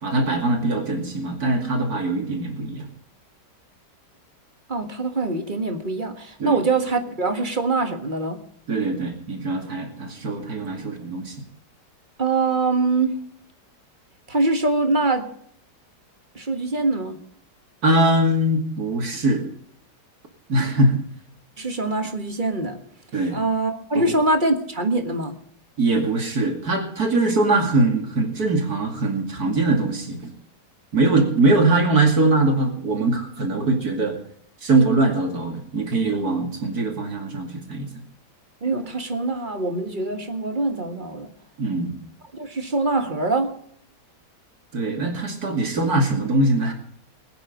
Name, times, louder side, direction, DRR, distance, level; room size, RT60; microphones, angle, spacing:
voice 1, 0.0-2.9 6.4-6.6 8.7-11.4 17.8-19.4 20.5-21.0 23.1-23.4 23.9-24.1 25.8-30.3 30.9-34.2 34.6-37.9 41.6-41.9 44.7-46.7, right 2 dB, 60° right, 4 dB, 2.9 m, -22 dB
voice 2, 4.7-8.4 12.2-13.2 14.3-15.3 16.4-17.2 21.6-22.8 23.3-25.3 38.6-41.3 42.3-43.5, right 3 dB, 30° right, 7 dB, 1.7 m, -23 dB
21.0 x 9.2 x 5.1 m, 0.66 s
omnidirectional pair, 1.8 m